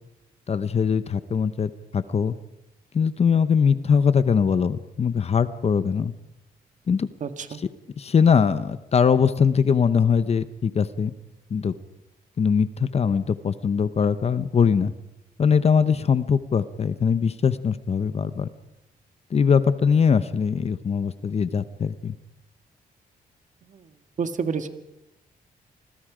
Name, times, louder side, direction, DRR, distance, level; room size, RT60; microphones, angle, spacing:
voice 1, 0.5-2.3 2.9-6.1 6.9-7.1 8.0-11.1 11.5-11.7 12.4-14.9 15.4-18.5 19.3-22.1, left 6 dB, 40° left, 13 dB, 0.9 m, -21 dB
voice 2, 7.2-7.6 23.6-24.7, right 5 dB, 50° right, 8 dB, 1.8 m, -30 dB
29.0 x 21.0 x 5.1 m, 0.87 s
cardioid pair, 125°, 16 cm